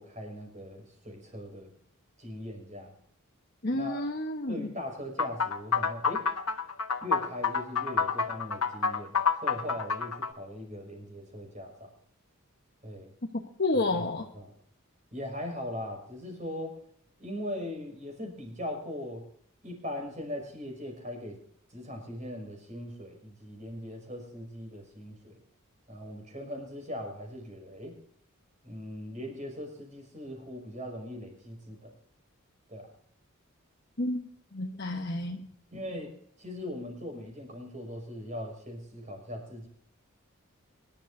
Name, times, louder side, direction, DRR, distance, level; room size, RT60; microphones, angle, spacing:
voice 1, 0.0-1.7 2.2-2.9 3.7-4.0 4.5-6.3 7.0-9.1 9.4-11.9 12.8-13.1 13.9-14.0 14.3-14.5 15.1-16.8 17.2-19.3 19.6-21.4 21.7-25.3 25.9-28.0 28.6-31.9 32.7-32.9 35.7-36.1 36.4-39.7, left 1 dB, 35° right, 2 dB, 5.4 m, -40 dB
voice 2, 3.6-4.7 13.3-14.3 34.0-35.5, left 2 dB, 45° left, 2 dB, 1.0 m, -31 dB
sound 1, 5.2-10.3, left 5 dB, 80° left, 1.3 m, -28 dB
24.5 x 12.0 x 2.7 m, 0.62 s
head